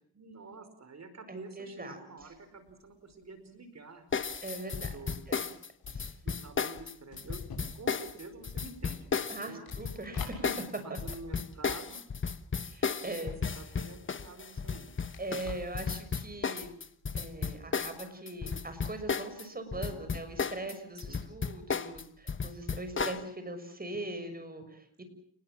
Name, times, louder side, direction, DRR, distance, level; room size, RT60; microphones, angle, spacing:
voice 1, 0.1-4.0 4.9-5.2 5.9-7.4 7.7-9.6 10.8-12.0 13.0-13.1 13.5-14.9 19.7-20.1 20.9-21.2, right 3 dB, 40° right, 10 dB, 5.0 m, -48 dB
voice 2, 1.3-2.0 4.4-4.9 5.3-5.5 5.9-6.1 9.3-11.0 12.6-13.4 15.2-16.7 17.1-25.0, right 2 dB, 25° right, 8 dB, 6.5 m, -41 dB
sound 1, 2.2-12.4 12.7-20.8, left 5 dB, 65° left, 7.3 m, -51 dB
sound 2, 4.1-19.4 19.7-23.2, left 5 dB, 30° left, 1.2 m, -34 dB
29.0 x 21.0 x 7.5 m, 0.63 s
cardioid pair, 95°, 39 cm